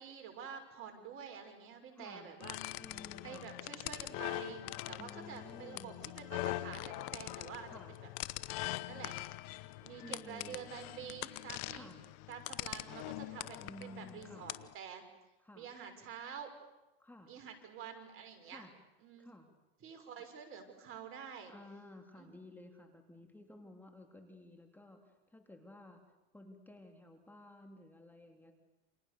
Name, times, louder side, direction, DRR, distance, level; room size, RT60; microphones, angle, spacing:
voice 1, 0.0-2.8 3.2-8.1 8.9-9.1 9.8-11.9 12.3-15.0 15.5-16.5 17.3-18.7 19.0-19.3 19.8-21.5 22.2-22.4, right 7 dB, 45° right, 5 dB, 6.1 m, -48 dB
voice 2, 1.9-2.3 2.7-3.5 5.0-6.0 7.7-8.0 10.0-10.6 11.7-12.0 13.6-14.5 15.4-15.7 17.0-17.3 18.5-18.7 19.2-19.5 21.5-26.0 26.3-28.5, left 1 dB, 5° left, 3 dB, 3.6 m, -54 dB
sound 1, 2.4-14.7, left 19 dB, 60° left, 1.2 m, -43 dB
29.5 x 27.5 x 6.9 m, 1.0 s
hypercardioid pair, 105°, 30 cm